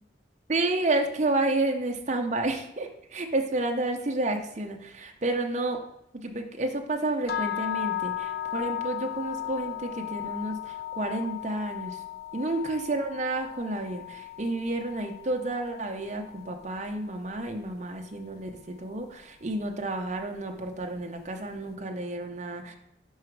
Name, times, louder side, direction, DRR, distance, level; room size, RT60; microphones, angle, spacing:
voice 1, 0.5-5.8 6.1-12.0 12.3-22.8, right 2 dB, 40° right, 3 dB, 0.6 m, -30 dB
sound 1, 7.3-17.4, left 12 dB, 55° left, 0.3 m, -36 dB
4.9 x 4.7 x 4.6 m, 0.81 s
head